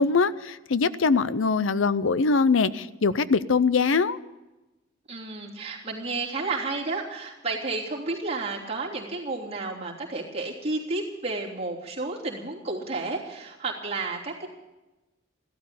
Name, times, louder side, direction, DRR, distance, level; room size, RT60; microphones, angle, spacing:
voice 1, 0.0-4.2, left 4 dB, 80° left, 16 dB, 0.6 m, -22 dB
voice 2, 5.1-14.5, right 3 dB, 30° right, -4 dB, 3.0 m, -31 dB
15.0 x 13.0 x 6.9 m, 1.0 s
head